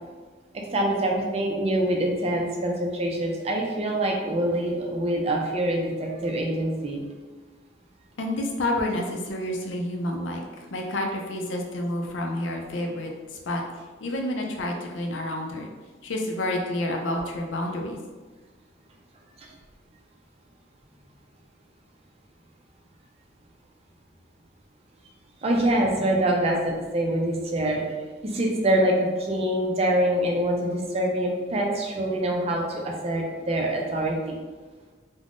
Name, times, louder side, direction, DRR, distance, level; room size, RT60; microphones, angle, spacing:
voice 1, 0.5-7.0 19.4-19.5 25.4-27.8 28.2-34.3, right 1 dB, 30° right, 0 dB, 0.4 m, -25 dB
voice 2, 8.2-10.4 10.7-13.1 13.5-13.6 14.0-15.7 16.0-18.0, left 1 dB, 85° left, 1 dB, 0.5 m, -29 dB
3.4 x 2.1 x 2.4 m, 1.4 s
head